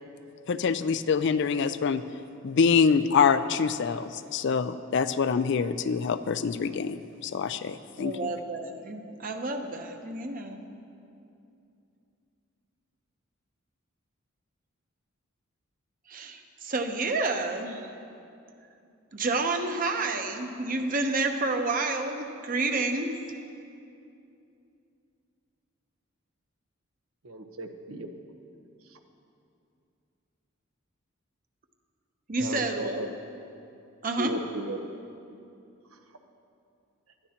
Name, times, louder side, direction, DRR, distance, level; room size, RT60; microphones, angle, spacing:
voice 1, 0.5-2.0 2.4-8.3, left 6 dB, 55° left, 12 dB, 0.4 m, -25 dB
voice 2, 8.0-10.7 16.1-17.8 19.1-23.1 32.3-33.1 34.0-34.3, right 3 dB, 40° right, 5 dB, 0.9 m, -29 dB
voice 3, 27.2-28.1 28.9-29.0 32.4-33.1 34.2-34.8, right 1 dB, 90° right, 5 dB, 1.0 m, -35 dB
19.5 x 12.5 x 2.9 m, 2.6 s
head